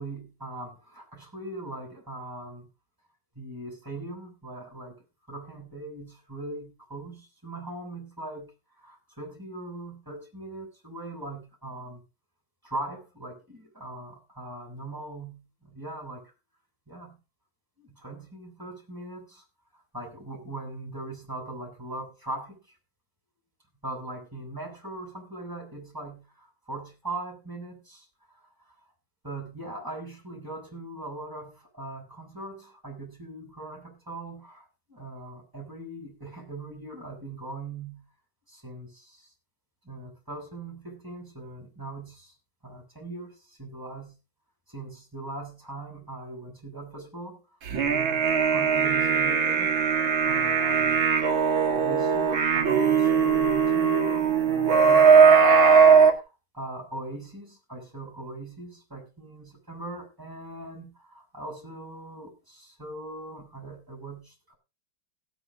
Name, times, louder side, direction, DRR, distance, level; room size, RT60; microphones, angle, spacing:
voice 1, 0.0-2.7 3.3-5.0 5.3-8.5 8.8-12.0 12.6-16.3 16.9-17.2 17.8-19.4 19.9-22.6 23.8-28.5 29.2-38.1 38.5-39.3 39.8-42.3 42.6-44.2 44.7-47.4 47.8-51.1 51.6-64.6, right 2 dB, 10° right, 0 dB, 6.3 m, -40 dB
sound 1, 47.7-56.1, right 6 dB, 70° right, 2.6 m, -20 dB
16.5 x 9.3 x 3.8 m, 0.29 s
omnidirectional pair, 2.3 m